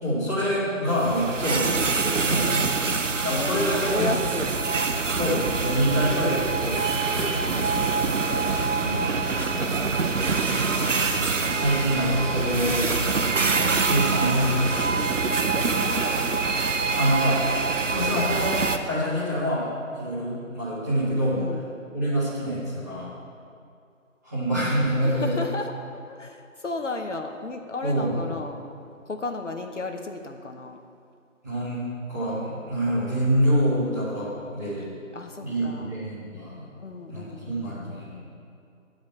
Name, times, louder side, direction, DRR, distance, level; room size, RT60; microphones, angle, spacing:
voice 1, 0.0-2.4 3.2-4.2 5.1-7.4 8.8-9.1 11.1-12.9 13.4-15.1 17.0-17.5 17.9-21.4 21.9-23.1 24.2-25.3 27.8-28.2 31.4-34.9 35.4-36.7 37.1-38.2, equal, 10° right, -12 dB, 1.6 m, -26 dB
sound 1, 0.9-18.8, right 4 dB, 65° right, 0.7 m, -25 dB
voice 2, 2.3-2.6 3.1-4.5 7.4-8.0 10.6-11.1 13.0-13.2 15.5-16.3 21.3-21.7 25.0-25.7 26.0-28.6 29.0-30.8 35.1-35.9 36.8-38.1, left 3 dB, 60° left, 4 dB, 0.9 m, -34 dB
10.5 x 5.1 x 7.4 m, 2.4 s
figure-of-eight pair, 170°, 41 cm